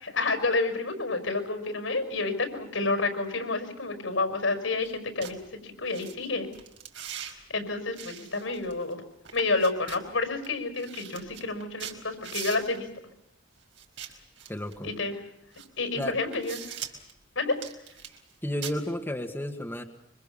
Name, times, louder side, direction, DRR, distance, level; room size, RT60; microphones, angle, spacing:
voice 1, 0.0-5.4 5.6-6.5 7.5-9.0 9.3-12.9 14.8-15.2 15.8-16.6 17.4-17.6, left 3 dB, 85° left, 7 dB, 5.6 m, -29 dB
sound 1, 4.8-4.9 5.2-5.3 5.9-6.1 6.5-7.3 8.0-8.9 9.2-10.0 10.4-10.5 10.8-12.8 13.8-14.8 15.5-15.7 16.0-17.1 17.5-18.3 18.6-18.8, right 9 dB, 75° right, 4.7 m, -41 dB
voice 2, 14.5-14.9 16.0-16.1 18.4-19.8, left 1 dB, 10° left, 3 dB, 1.7 m, -32 dB
25.5 x 25.0 x 7.0 m, 0.83 s
head